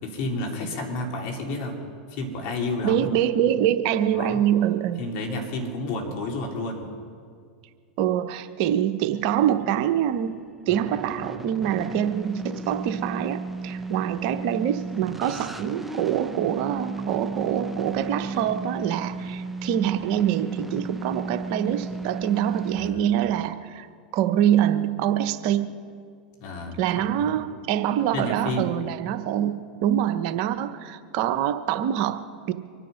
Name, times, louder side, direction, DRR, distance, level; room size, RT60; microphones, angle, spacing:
voice 1, 0.0-1.8 2.1-3.1 4.1-4.4 5.0-6.9 14.2-14.3 22.7-23.1 26.4-27.4 28.1-28.7, left 2 dB, 55° left, 1 dB, 3.8 m, -31 dB
voice 2, 2.8-5.0 8.0-23.9 24.1-25.9 26.8-32.5, right 10 dB, 55° right, 10 dB, 0.9 m, -25 dB
sound 1, 9.1-22.9, right 3 dB, 5° right, 1.1 m, -34 dB
24.5 x 10.0 x 5.8 m, 2.1 s
hypercardioid pair, 100°, 5 cm